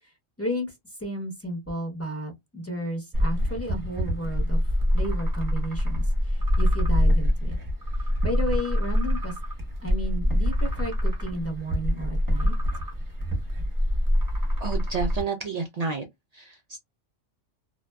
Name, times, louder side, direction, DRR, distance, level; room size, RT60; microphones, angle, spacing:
voice 1, 0.0-7.6 8.0-9.4 9.8-12.5, equal, 15° left, 0.6 m, -33 dB
sound 1, 3.1-15.2, equal, 20° right, 0.7 m, -25 dB
voice 2, 14.6-16.1 16.3-16.8, right 5 dB, 90° right, 0.3 m, -30 dB
2.6 x 2.1 x 2.2 m
omnidirectional pair, 1.3 m